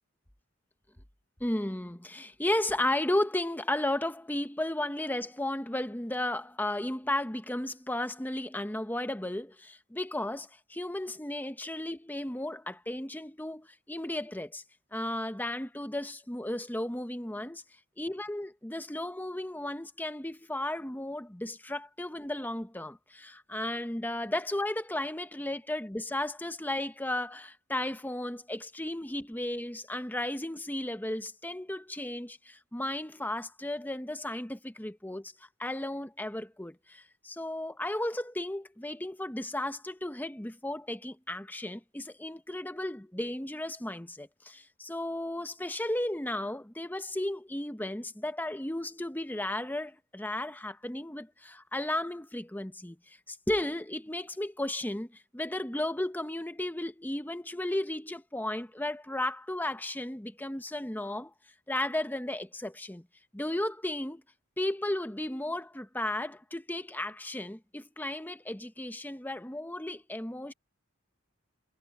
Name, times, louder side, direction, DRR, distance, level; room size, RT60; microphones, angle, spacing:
voice 1, 1.4-14.6 14.9-17.6 18.0-35.3 35.6-61.3 61.7-63.0 63.3-64.2 64.6-70.5, left 1 dB, 10° left, 0.9 m, -34 dB
head